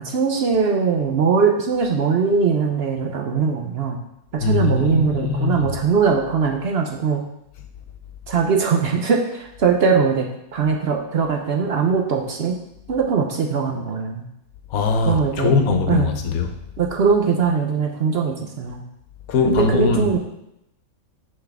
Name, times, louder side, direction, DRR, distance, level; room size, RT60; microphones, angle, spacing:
voice 1, 0.0-4.0 4.3-7.2 8.3-12.5 12.9-14.3 15.1-15.5 15.9-16.1 16.8-18.8 19.4-20.2, right 5 dB, 55° right, 1 dB, 0.8 m, -21 dB
voice 2, 4.4-5.7 14.7-16.5 19.3-20.2, left 4 dB, 85° left, 6 dB, 1.2 m, -21 dB
5.8 x 5.5 x 3.4 m, 0.82 s
omnidirectional pair, 1.5 m